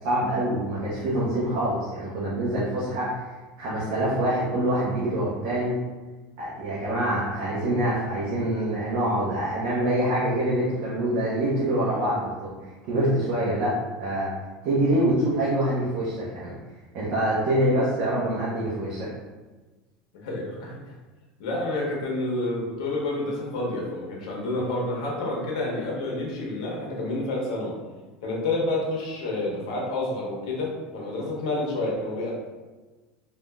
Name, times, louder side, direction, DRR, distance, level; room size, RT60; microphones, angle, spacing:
voice 1, 0.0-5.8 6.4-14.3 14.6-16.5 16.9-19.1, right 1 dB, 55° right, -8 dB, 0.8 m, -25 dB
voice 2, 20.1-20.8 21.4-27.7 28.2-32.3, left 2 dB, 90° left, -2 dB, 0.9 m, -29 dB
3.5 x 2.4 x 2.2 m, 1.2 s
supercardioid pair, 160°, 3 cm